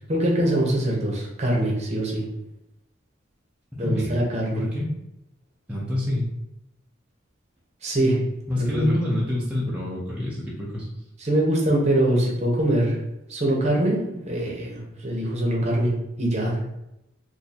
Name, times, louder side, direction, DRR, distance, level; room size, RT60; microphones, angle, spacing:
voice 1, 0.1-2.2 3.8-4.6 7.8-8.2 8.6-8.9 11.2-13.0 13.3-15.9 16.2-16.6, right 1 dB, 35° right, -2 dB, 0.9 m, -23 dB
voice 2, 3.8-4.2 4.6-4.9 5.7-6.3 8.5-10.9, left 1 dB, 5° right, -7 dB, 0.6 m, -27 dB
2.7 x 2.7 x 4.1 m, 0.88 s
head